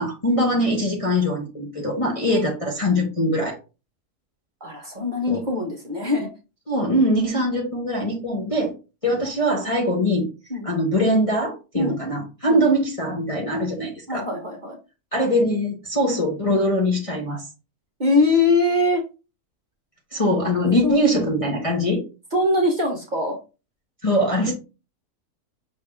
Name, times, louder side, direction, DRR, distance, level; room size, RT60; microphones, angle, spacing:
voice 1, 0.0-3.6 5.3-5.4 6.7-8.7 9.0-10.3 10.6-14.2 15.1-17.4 20.1-22.0 24.0-24.5, equal, 30° left, -1 dB, 0.8 m, -22 dB
voice 2, 4.6-6.3 9.0-9.1 10.5-10.7 11.7-12.0 12.5-12.6 14.1-14.8 18.0-19.0 20.8-21.0 22.3-23.4 24.5-24.6, left 2 dB, 35° right, 1 dB, 1.0 m, -22 dB
5.6 x 2.7 x 3.5 m, 0.30 s
omnidirectional pair, 1.6 m